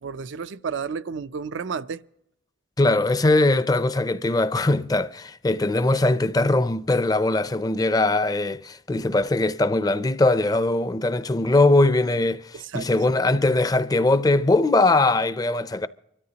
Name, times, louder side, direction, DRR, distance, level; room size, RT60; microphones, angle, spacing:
voice 1, 0.0-2.0 12.5-12.9, right 5 dB, 85° right, 0.5 m, -31 dB
voice 2, 2.8-15.9, left 2 dB, 20° left, 0.5 m, -21 dB
24.5 x 13.5 x 2.9 m
head